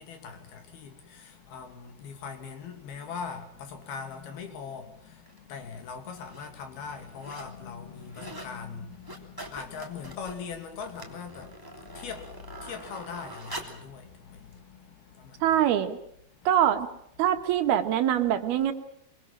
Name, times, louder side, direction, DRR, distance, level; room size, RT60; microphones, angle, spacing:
voice 1, 0.0-15.6 16.3-16.5, left 6 dB, 80° left, 4.6 m, -41 dB
sound 1, 5.3-5.4 6.1-6.5 6.9-7.6 7.9-8.6 8.9-13.9 14.5-14.6, right 1 dB, 5° right, 2.4 m, -44 dB
voice 2, 15.4-16.0 16.5-16.9 17.2-18.7, right 10 dB, 85° right, 3.6 m, -23 dB
24.0 x 23.5 x 7.5 m
omnidirectional pair, 4.4 m